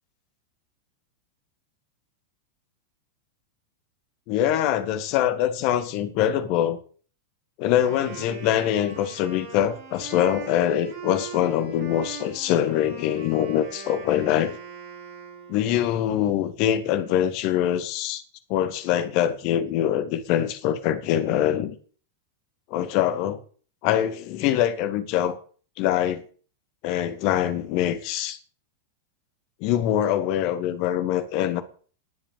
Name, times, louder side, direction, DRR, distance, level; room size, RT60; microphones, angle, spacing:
voice 1, 4.3-6.8 7.6-14.6 15.5-18.2 18.5-21.8 22.7-23.4 23.8-25.4 25.8-26.2 26.8-28.4 29.6-31.6, left 11 dB, 45° left, 2.2 m, -24 dB
Wind instrument woodwind instrument, 7.6-15.8, right 7 dB, 45° right, 6.6 m, -41 dB
19.5 x 7.3 x 8.3 m
figure-of-eight pair, 90°, 0 cm